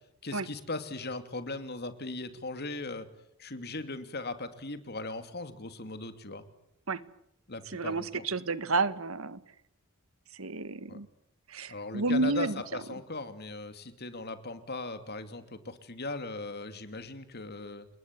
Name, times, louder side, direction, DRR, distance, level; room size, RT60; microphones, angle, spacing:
voice 1, 0.2-3.1 3.4-6.4 7.5-8.2 10.9-11.0 11.7-17.9, left 2 dB, 50° left, 9 dB, 2.8 m, -38 dB
voice 2, 7.7-9.4 10.4-11.1 11.5-12.6, right 3 dB, 75° right, 15 dB, 1.5 m, -30 dB
30.0 x 20.5 x 9.4 m, 0.76 s
head